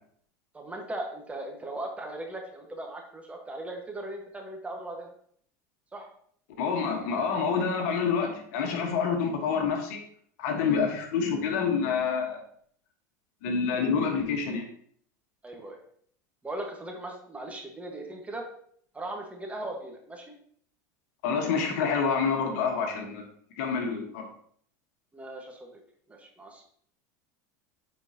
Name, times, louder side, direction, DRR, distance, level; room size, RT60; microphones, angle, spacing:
voice 1, 0.5-5.1 5.9-6.1 10.9-11.0 15.4-15.8 16.4-18.4 18.9-20.3 25.1-25.8 26.1-26.7, right 1 dB, 15° right, 2 dB, 1.5 m, -38 dB
voice 2, 6.6-10.0 10.4-12.4 13.4-14.6 21.2-23.2 23.6-24.3, left 5 dB, 70° left, 3 dB, 1.4 m, -27 dB
9.0 x 4.4 x 2.9 m, 0.62 s
hypercardioid pair, 95°, 9 cm